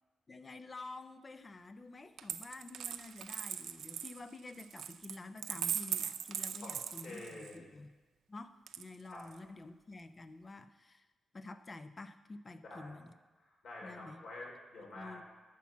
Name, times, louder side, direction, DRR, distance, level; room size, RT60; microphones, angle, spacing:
voice 1, 0.3-7.9 8.3-11.1 11.3-13.1 13.8-14.2 14.8-15.2, left 2 dB, 25° left, 11 dB, 0.5 m, -49 dB
Coin (dropping), 2.2-7.6 8.7-9.4, right 9 dB, 90° right, 0.5 m, -40 dB
voice 2, 6.6-7.7 9.1-9.3 12.6-13.0 13.4-15.2, left 2 dB, 60° left, -1 dB, 3.3 m, -48 dB
10.5 x 5.9 x 7.2 m, 1.2 s
wide cardioid pair, 135°, 0 cm